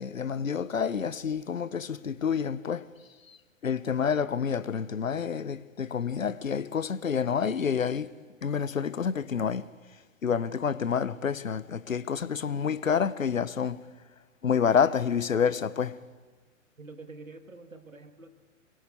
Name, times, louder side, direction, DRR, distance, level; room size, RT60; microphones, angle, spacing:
voice 1, 0.0-2.8 3.3-3.4 3.6-8.1 8.4-9.7 10.2-13.9 14.4-16.0, left 7 dB, 80° left, 0.9 m, -28 dB
voice 2, 16.8-18.3, right 3 dB, 90° right, 1.8 m, -46 dB
27.0 x 22.5 x 4.3 m
figure-of-eight pair, 115°, 39 cm